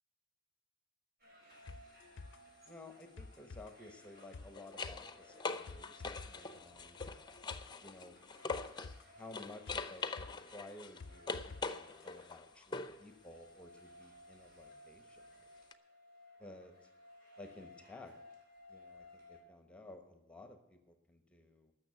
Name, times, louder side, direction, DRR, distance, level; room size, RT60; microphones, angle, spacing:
sound 1, 1.2-19.4, left 1 dB, 55° right, 4.4 m, -60 dB
sound 2, 1.5-1.7 4.0-9.0 9.3-13.1 15.7-15.8, left 4 dB, 25° left, 0.6 m, -43 dB
sound 3, 1.7-11.7 12.0-12.1, left 3 dB, 70° left, 0.5 m, -53 dB
voice 1, 2.7-7.0 7.8-8.2 9.1-15.4 16.4-16.9 17.4-18.1 18.7-21.7, left 2 dB, 5° left, 6 dB, 1.1 m, -54 dB
13.5 x 6.5 x 9.3 m, 0.89 s
head